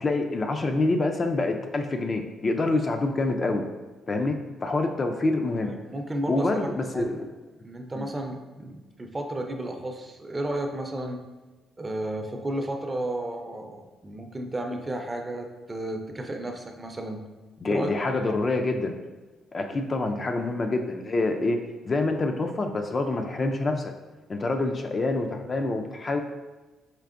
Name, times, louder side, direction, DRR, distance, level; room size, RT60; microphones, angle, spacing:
voice 1, 0.0-3.6 4.1-5.7 6.3-7.3 7.9-8.1 17.6-18.9 19.5-21.6 21.9-23.9 24.3-26.2, left 2 dB, 35° left, 4 dB, 0.4 m, -26 dB
voice 2, 5.6-6.7 6.9-7.1 7.6-11.3 11.8-17.2 17.7-18.4, right 1 dB, 20° right, 4 dB, 0.5 m, -33 dB
4.4 x 3.3 x 2.5 m, 1.2 s
cardioid pair, 90°, 0 cm